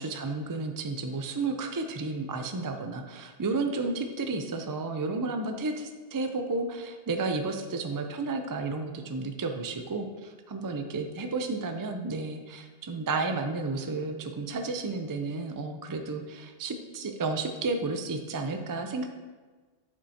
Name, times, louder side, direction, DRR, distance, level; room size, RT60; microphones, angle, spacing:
voice 1, 0.0-19.1, right 3 dB, 30° right, 5 dB, 0.4 m, -32 dB
7.4 x 6.7 x 2.8 m, 1.4 s
omnidirectional pair, 1.1 m